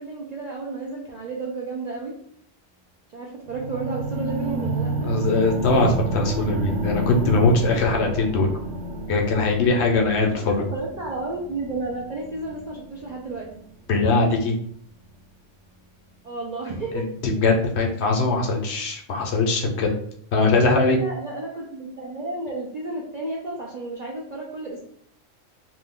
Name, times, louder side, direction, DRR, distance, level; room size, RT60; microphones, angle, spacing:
voice 1, 0.0-2.1 3.1-5.1 10.3-13.5 16.2-17.1 20.6-24.8, right 3 dB, 60° right, -3 dB, 0.4 m, -32 dB
sound 1, 3.5-13.6 14.3-14.4, right 2 dB, 90° right, 1.1 m, -30 dB
voice 2, 5.0-8.5 9.1-10.5 13.9-14.5 16.9-19.9 20.3-21.0, left 3 dB, 65° left, 1 dB, 0.8 m, -21 dB
2.6 x 2.2 x 3.6 m, 0.64 s
omnidirectional pair, 1.3 m